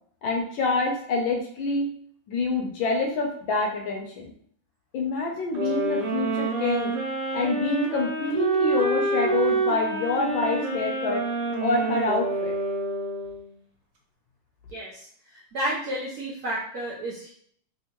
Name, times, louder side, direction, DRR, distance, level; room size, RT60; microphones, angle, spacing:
voice 1, 0.2-1.9 2.3-4.3 4.9-6.9 7.3-11.2 11.6-12.5, left 3 dB, 75° left, 1 dB, 1.3 m, -26 dB
sound 1, 5.6-13.5, right 3 dB, 85° right, 1.7 m, -27 dB
voice 2, 14.7-17.3, right 1 dB, 65° right, -5 dB, 0.9 m, -32 dB
3.6 x 3.2 x 2.8 m, 0.62 s
omnidirectional pair, 2.4 m